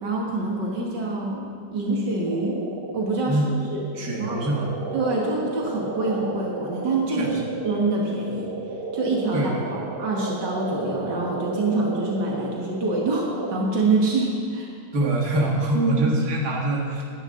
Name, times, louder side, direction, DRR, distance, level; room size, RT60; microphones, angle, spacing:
voice 1, 0.0-1.5 1.7-2.6 2.9-3.8 4.2-4.4 4.9-7.4 7.6-8.5 8.9-14.7 15.7-16.1, right 2 dB, 85° right, -2 dB, 2.3 m, -25 dB
sound 1, 2.3-13.7, right 2 dB, 40° right, 1.0 m, -34 dB
voice 2, 4.0-4.7 7.2-7.4 9.3-9.6 14.9-17.1, right 2 dB, 65° right, -2 dB, 2.4 m, -24 dB
20.0 x 10.5 x 3.8 m, 2.3 s
omnidirectional pair, 1.8 m